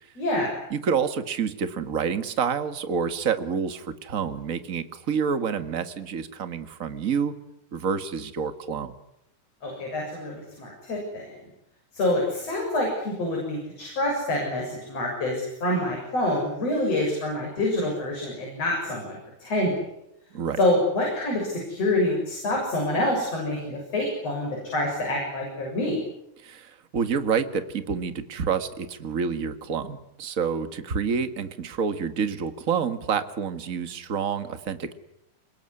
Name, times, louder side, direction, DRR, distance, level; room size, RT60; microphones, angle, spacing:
voice 1, 0.2-0.6 9.6-11.4 11.9-19.8 20.6-26.0, left 1 dB, 45° left, -1 dB, 8.1 m, -26 dB
voice 2, 0.7-7.3 7.7-8.9 20.3-20.6 26.4-34.9, right 6 dB, 40° right, 10 dB, 1.3 m, -28 dB
27.0 x 22.0 x 9.8 m, 0.81 s
omnidirectional pair, 4.0 m